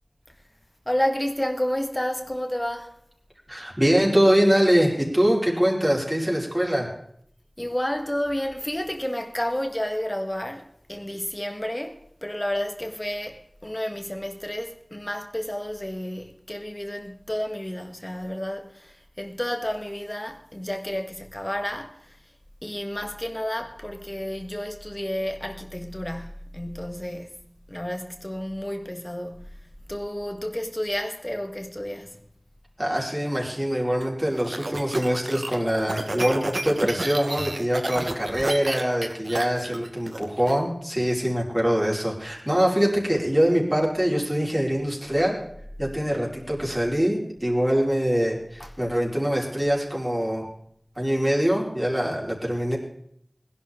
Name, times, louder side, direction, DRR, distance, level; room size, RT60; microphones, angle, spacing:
voice 1, 0.9-3.0 7.6-22.2 22.6-32.2 48.6-48.8, equal, 25° left, 1.7 m, -31 dB
voice 2, 3.5-6.9 32.8-45.4 45.8-50.5 51.0-52.8, equal, 20° right, 4.6 m, -23 dB
sound 1, 34.0-40.5, right 2 dB, 75° right, 1.3 m, -31 dB
20.5 x 11.5 x 3.8 m
wide cardioid pair, 40°, 0 cm